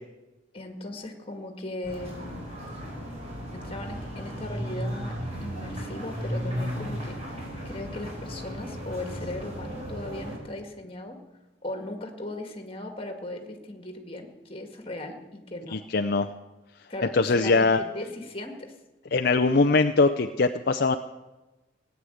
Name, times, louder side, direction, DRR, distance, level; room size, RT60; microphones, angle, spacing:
voice 1, 0.5-2.5 3.5-5.2 5.4-11.2 11.6-15.8 16.9-18.7, left 1 dB, 30° left, 4 dB, 2.0 m, -38 dB
sound 1, 1.8-10.4, equal, 35° right, 5.4 m, -35 dB
voice 2, 15.7-16.3 17.1-17.8 19.1-21.0, left 3 dB, 55° left, 7 dB, 0.6 m, -22 dB
18.0 x 9.6 x 7.9 m, 1.1 s
head